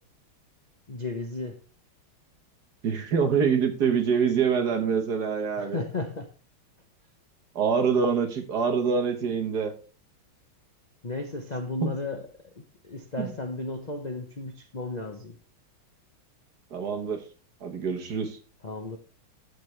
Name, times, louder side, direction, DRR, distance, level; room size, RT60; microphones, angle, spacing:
voice 1, 0.9-1.6 5.6-6.3 11.0-12.2 12.8-15.4 18.6-19.0, left 2 dB, 75° left, 0.4 m, -34 dB
voice 2, 2.8-5.8 7.5-9.7 11.8-11.9 13.2-13.3 16.7-17.2 17.6-18.4, right 6 dB, 55° right, 1.6 m, -25 dB
12.0 x 6.7 x 3.2 m
omnidirectional pair, 2.3 m